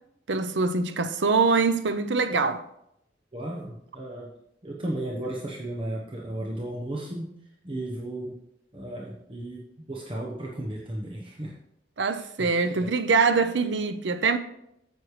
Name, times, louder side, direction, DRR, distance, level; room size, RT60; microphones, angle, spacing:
voice 1, 0.3-2.6 12.0-14.4, right 4 dB, 75° right, 0.7 m, -24 dB
voice 2, 3.3-4.3 4.6-7.3 7.6-8.4 8.7-11.5 12.1-12.5 12.8-12.9, right 1 dB, 30° right, 1.1 m, -34 dB
9.5 x 7.5 x 3.2 m
head